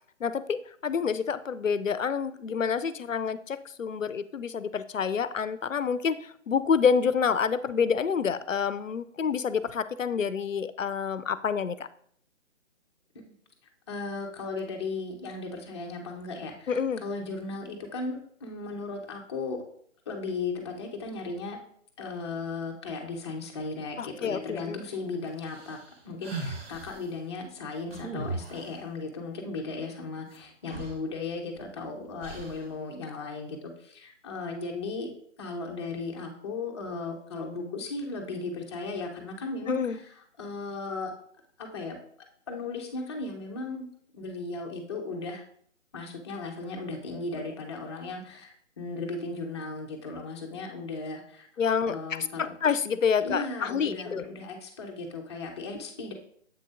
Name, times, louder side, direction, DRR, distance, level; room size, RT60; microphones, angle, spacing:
voice 1, 0.2-11.9 16.7-17.0 24.0-24.9 39.7-40.0 51.6-54.2, left 6 dB, 80° left, 15 dB, 0.6 m, -28 dB
voice 2, 13.9-19.6 20.1-21.6 22.0-25.8 26.0-35.1 35.4-39.8 40.4-41.1 41.6-42.0 42.5-43.9 44.1-45.4 45.9-51.5 51.8-52.5 53.2-56.1, left 3 dB, 20° left, 2 dB, 0.8 m, -36 dB
sound 1, 25.4-27.0 27.9-28.8 30.3-30.4 30.7-31.7 32.2-32.7, right 2 dB, 50° right, 1.3 m, -38 dB
7.6 x 6.2 x 2.5 m, 0.63 s
figure-of-eight pair, 140°, 38 cm